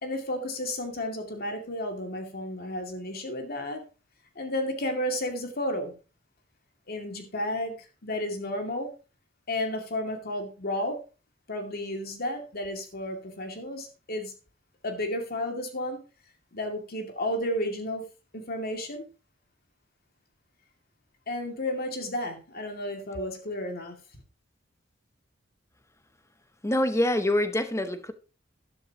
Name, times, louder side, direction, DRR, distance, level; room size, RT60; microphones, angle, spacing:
voice 1, 0.0-3.8 4.4-5.9 6.9-7.8 8.0-8.9 9.5-11.0 11.5-14.3 14.8-16.0 16.5-18.0 18.3-19.1 21.3-24.0, left 1 dB, 50° left, 2.4 m, -32 dB
voice 2, 26.6-28.1, left 1 dB, 15° left, 0.9 m, -25 dB
12.5 x 11.0 x 3.0 m
head